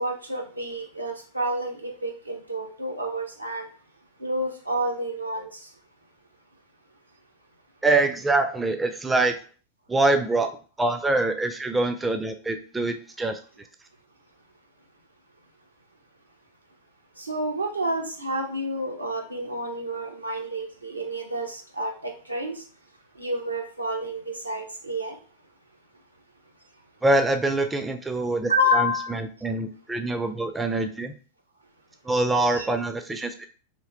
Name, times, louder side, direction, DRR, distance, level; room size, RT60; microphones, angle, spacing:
voice 1, 0.0-3.7 4.2-5.6 17.2-22.6 23.2-25.2 28.5-29.2 32.5-32.7, equal, 85° right, 0.6 m, -29 dB
voice 2, 7.8-9.4 9.9-10.5 10.8-13.4 27.0-31.1 32.1-33.5, right 2 dB, 10° right, 0.3 m, -24 dB
3.1 x 2.7 x 2.4 m
figure-of-eight pair, 90°, 0 cm